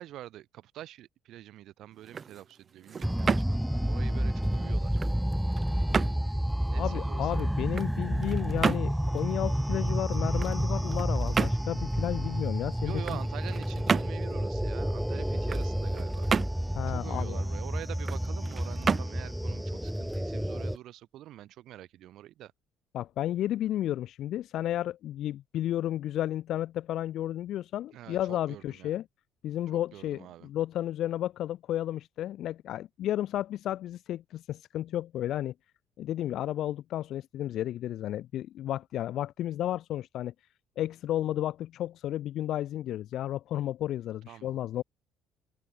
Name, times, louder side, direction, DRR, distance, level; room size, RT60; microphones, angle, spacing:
voice 1, 0.0-4.9 6.7-7.4 12.8-16.3 16.9-22.5 27.9-29.0 29.7-30.5 44.3-44.6, right 13 dB, 65° right, 2.7 m, -46 dB
sound 1, 1.9-20.8, right 6 dB, 35° right, 1.6 m, -35 dB
sound 2, 3.0-20.8, equal, ahead, 0.7 m, -30 dB
voice 2, 6.8-13.2 16.7-17.4 22.9-29.0 29.4-35.5 36.0-40.3 40.8-44.8, left 12 dB, 65° left, 0.8 m, -32 dB
open air
cardioid pair, 105°, 0 cm